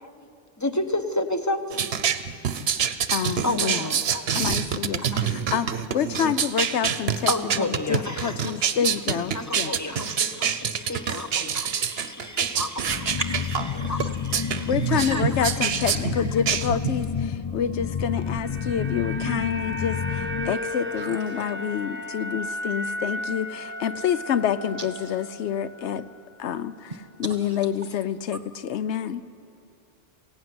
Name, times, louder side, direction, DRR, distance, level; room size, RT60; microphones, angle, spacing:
voice 1, 0.6-1.9 3.4-4.3 5.0-5.5 7.3-8.8 9.1-13.2 13.7-16.7, left 1 dB, 15° left, 7 dB, 1.0 m, -32 dB
sound 1, 1.7-17.0, right 7 dB, 65° right, 1.0 m, -26 dB
voice 2, 3.1-3.9 4.3-7.3 7.6-9.7 14.7-26.0 26.4-26.9 27.2-29.2, left 8 dB, 85° left, 14 dB, 1.0 m, -28 dB
sound 2, 12.9-20.5, left 6 dB, 40° left, 0.4 m, -30 dB
voice 3, 13.2-14.1 14.9-15.3 21.0-21.2 24.8-24.9, right 3 dB, 35° right, 7 dB, 1.2 m, -35 dB
sound 3, 17.9-26.2 26.5-26.6, left 1 dB, 10° right, 0.9 m, -35 dB
21.5 x 16.0 x 9.5 m, 2.6 s
omnidirectional pair, 1.1 m